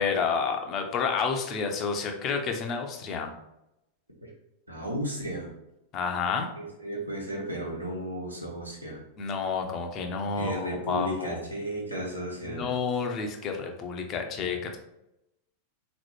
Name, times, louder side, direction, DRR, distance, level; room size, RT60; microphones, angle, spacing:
voice 1, 0.0-3.3 5.9-6.5 9.2-11.4 12.5-14.8, left 5 dB, 35° left, 4 dB, 0.6 m, -30 dB
voice 2, 4.7-5.5 6.6-9.0 10.3-12.7, equal, 85° right, -3 dB, 1.1 m, -34 dB
3.9 x 3.1 x 3.1 m, 0.87 s
figure-of-eight pair, 90°, 0 cm